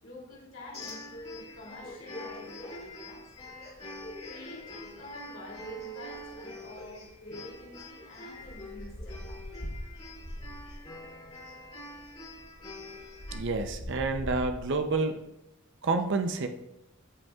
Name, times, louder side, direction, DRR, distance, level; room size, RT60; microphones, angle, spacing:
voice 1, 0.0-3.3 4.2-9.6, left 1 dB, 70° left, -4 dB, 2.9 m, -47 dB
sound 1, 0.7-13.4, left 1 dB, 30° left, 2.7 m, -45 dB
sound 2, 8.4-11.0 11.9-12.0 12.3-15.0, equal, 55° left, 1.4 m, -41 dB
voice 2, 13.3-15.2 15.8-16.5, right 3 dB, 60° right, 7 dB, 0.6 m, -29 dB
14.5 x 5.4 x 2.4 m, 0.85 s
head